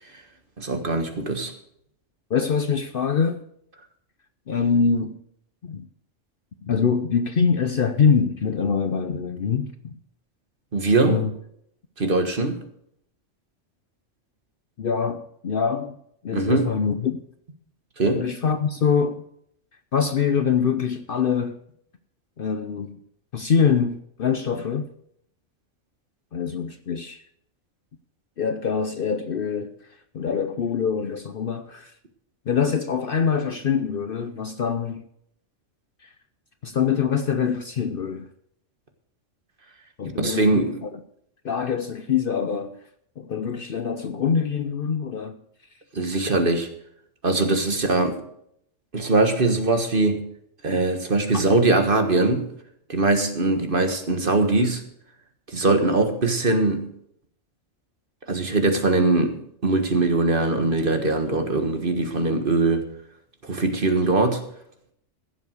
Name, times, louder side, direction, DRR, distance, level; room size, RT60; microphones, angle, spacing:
voice 1, 0.6-1.5 10.7-11.2 12.0-12.6 16.3-16.7 18.0-18.2 40.2-40.8 45.9-46.7 47.2-48.2 48.9-50.2 50.6-52.5 52.9-54.8 55.5-56.9 58.3-62.9 63.4-64.4, right 2 dB, 45° right, 1.6 m, -21 dB
voice 2, 2.3-3.4 4.5-5.1 5.6-5.8 6.6-9.9 11.0-11.3 14.8-16.0 16.2-17.2 18.1-19.2 19.9-21.6 22.4-23.0 23.3-24.9 26.3-27.2 28.4-31.9 32.5-35.1 36.0-36.1 36.6-38.3 40.0-41.0 41.4-42.8 43.2-45.4, left 6 dB, 50° left, 0.8 m, -24 dB
16.0 x 7.1 x 6.4 m
omnidirectional pair, 1.3 m